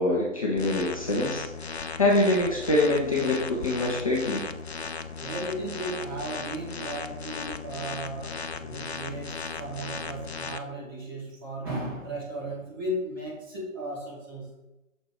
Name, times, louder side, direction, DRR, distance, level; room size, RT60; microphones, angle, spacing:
voice 1, 0.0-1.7 2.0-4.5, left 2 dB, 25° left, -2 dB, 0.9 m, -25 dB
sound 1, 0.6-10.6, left 5 dB, 55° left, 0.6 m, -36 dB
voice 2, 5.2-14.6, right 1 dB, 15° right, -5 dB, 1.4 m, -36 dB
6.4 x 4.5 x 4.8 m, 0.98 s
figure-of-eight pair, 150°, 38 cm